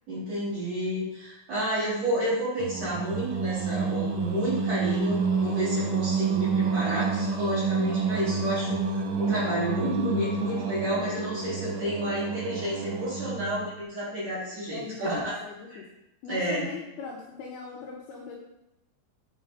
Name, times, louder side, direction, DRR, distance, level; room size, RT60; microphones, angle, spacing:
voice 1, 0.1-15.3 15.7-15.8 16.3-16.7, right 1 dB, 40° right, -10 dB, 3.8 m, -30 dB
Singing, 2.6-13.7, right 4 dB, 85° right, 3.3 m, -29 dB
voice 2, 14.7-15.9 16.2-18.4, left 5 dB, 80° left, -2 dB, 2.4 m, -39 dB
8.2 x 5.3 x 4.0 m, 0.87 s
omnidirectional pair, 5.3 m